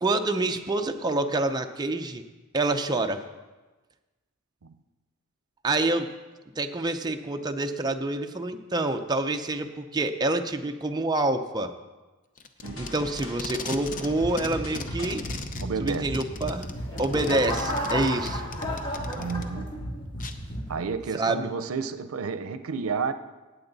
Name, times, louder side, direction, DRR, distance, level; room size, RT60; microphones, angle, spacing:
voice 1, 0.0-2.2 2.5-3.2 5.6-6.1 6.6-11.7 12.8-15.2 15.8-16.7 17.0-18.5 21.1-21.5, right 2 dB, 20° right, 0.6 m, -27 dB
Packing tape duct tape, 12.4-14.1 14.4-19.4 20.2-20.3, left 4 dB, 40° left, 0.7 m, -37 dB
sound 1, 12.6-20.7, equal, 70° left, 2.9 m, -36 dB
voice 2, 15.6-16.1 19.1-19.8 20.7-23.1, right 5 dB, 90° right, 0.6 m, -31 dB
sound 2, 16.4-20.0 20.6-20.9, equal, 25° left, 1.9 m, -33 dB
17.5 x 7.9 x 4.0 m
head